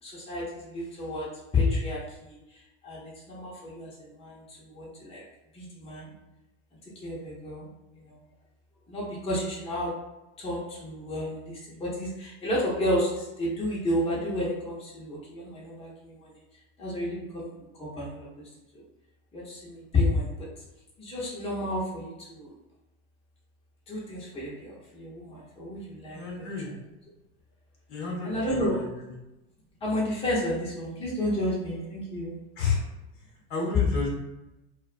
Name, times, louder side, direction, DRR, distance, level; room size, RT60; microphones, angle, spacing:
voice 1, 0.0-1.3 1.5-5.2 5.5-6.1 7.0-7.7 7.9-8.2 8.9-10.0 10.4-16.3 16.8-17.5 17.8-18.8 19.3-20.5 21.0-22.5 23.9-26.5 28.2-28.8 29.8-32.4, left 1 dB, 15° left, -7 dB, 0.8 m, -31 dB
voice 2, 26.1-26.7 27.9-28.8 32.6-32.8 33.5-34.1, left 5 dB, 55° left, -2 dB, 1.0 m, -31 dB
2.4 x 2.2 x 2.4 m, 0.95 s
hypercardioid pair, 100°, 36 cm